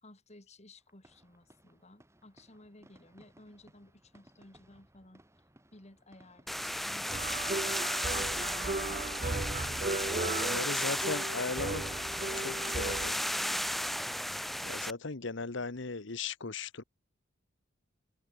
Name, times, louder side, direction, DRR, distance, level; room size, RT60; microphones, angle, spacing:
voice 1, 0.0-5.2 5.7-7.3 8.0-13.8, left 1 dB, 35° left, 3.1 m, -57 dB
sound 1, 0.8-10.5, right 1 dB, 15° right, 6.2 m, -63 dB
sound 2, 6.5-14.9, equal, ahead, 0.4 m, -34 dB
sound 3, 7.1-13.1, right 3 dB, 40° right, 1.0 m, -36 dB
voice 2, 10.1-11.8 12.3-13.2 14.6-16.8, left 4 dB, 65° left, 1.1 m, -37 dB
head